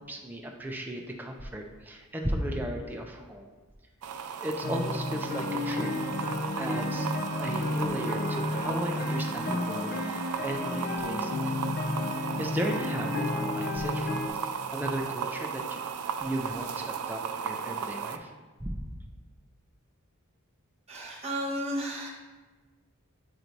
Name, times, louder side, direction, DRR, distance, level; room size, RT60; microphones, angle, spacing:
voice 1, 0.1-3.5 4.4-5.9 6.6-7.1 7.4-11.5 12.4-15.8 16.2-18.3 18.6-18.8, equal, 10° right, 1 dB, 0.4 m, -35 dB
sound 1, 4.0-18.2, right 7 dB, 80° right, 0.4 m, -35 dB
sound 2, 4.6-14.3, left 2 dB, 45° left, 0.6 m, -32 dB
voice 2, 20.9-22.1, equal, 30° right, -3 dB, 1.1 m, -33 dB
7.8 x 2.7 x 4.5 m, 1.3 s
head